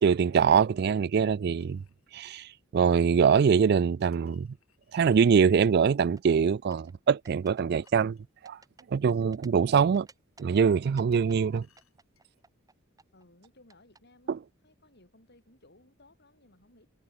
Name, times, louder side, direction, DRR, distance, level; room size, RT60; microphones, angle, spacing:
voice 1, 0.0-1.8 2.1-4.5 4.9-8.2 8.4-8.6 8.9-10.1 10.4-11.7 14.3-14.4, right 6 dB, 50° right, 0.3 m, -23 dB
sound 1, 1.6-2.1 4.1-5.1 7.5-8.9 11.1-12.4, left 10 dB, 75° left, 7.5 m, -70 dB
sound 2, 5.2-5.8 6.2-6.9 7.2-7.6 7.9-9.5 9.8-10.6 11.0-12.7 13.0-14.0, right 3 dB, 15° right, 2.2 m, -56 dB
voice 2, 13.1-14.4 14.6-16.9, left 2 dB, 50° left, 7.3 m, -59 dB
head